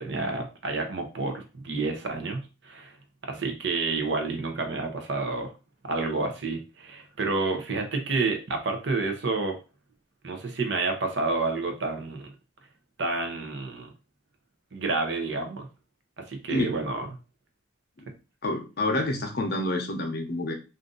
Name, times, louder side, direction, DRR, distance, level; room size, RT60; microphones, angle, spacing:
voice 1, 0.0-3.0 3.2-5.5 5.8-9.6 10.2-12.3 13.0-13.9 14.7-15.7 16.2-17.1, right 3 dB, 60° right, 5 dB, 0.7 m, -29 dB
voice 2, 18.4-20.5, left 1 dB, 50° left, 4 dB, 0.7 m, -28 dB
2.5 x 2.5 x 3.7 m, 0.31 s
head